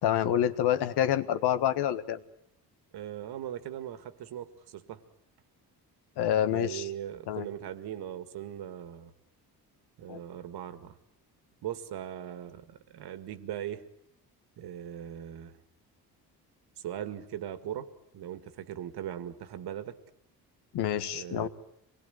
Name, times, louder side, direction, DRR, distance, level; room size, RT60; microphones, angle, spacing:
voice 1, 0.0-2.2 6.2-6.9 7.3-7.5 10.1-10.2 20.7-21.5, left 11 dB, 80° left, 12 dB, 1.6 m, -27 dB
voice 2, 2.9-5.0 6.5-9.1 10.0-11.0 11.6-13.8 14.6-15.6 16.8-17.9 18.1-20.0 21.1-21.5, right 10 dB, 75° right, 11 dB, 2.1 m, -39 dB
26.0 x 20.5 x 9.4 m, 0.72 s
cardioid pair, 115°, 39 cm